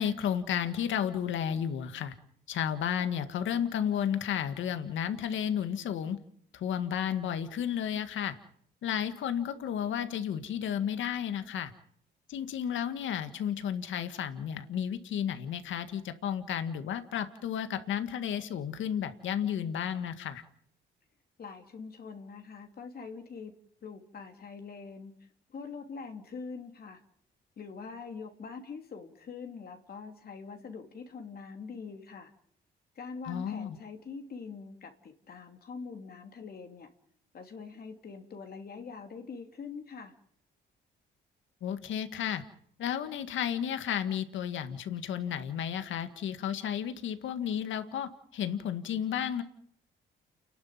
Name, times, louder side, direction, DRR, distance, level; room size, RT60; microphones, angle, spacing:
voice 1, 0.0-2.1 2.5-6.2 6.5-8.3 8.8-11.7 12.3-20.4 33.3-33.8 41.6-42.4 42.8-49.4, left 9 dB, 75° left, 10 dB, 1.9 m, -32 dB
voice 2, 21.4-23.5 23.8-27.0 27.6-32.3 32.9-36.9 37.3-40.1, left 5 dB, 50° left, 5 dB, 3.0 m, -44 dB
29.5 x 11.5 x 9.5 m, 0.65 s
cardioid pair, 90°, 20 cm